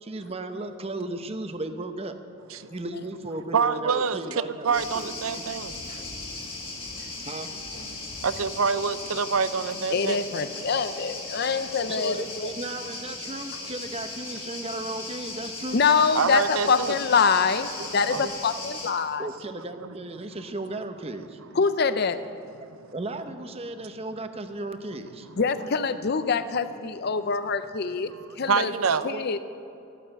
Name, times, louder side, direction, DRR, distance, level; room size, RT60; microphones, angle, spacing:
voice 1, 0.0-2.2 2.7-5.5 7.2-7.5 11.9-15.8 19.2-21.4 22.9-25.3 29.0-29.4, right 2 dB, 30° right, 8 dB, 0.8 m, -35 dB
voice 2, 3.5-4.2 4.6-6.0 8.2-10.2 16.2-16.9 18.1-18.3 19.8-19.9 28.5-29.0, right 5 dB, 80° right, 13 dB, 0.6 m, -26 dB
sound 1, 4.7-18.9, left 3 dB, 25° left, 1.9 m, -37 dB
voice 3, 9.9-12.5 15.7-19.3 21.5-22.2 25.4-28.7 29.0-29.4, left 5 dB, 50° left, 12 dB, 0.5 m, -25 dB
14.5 x 9.1 x 8.0 m, 2.8 s
head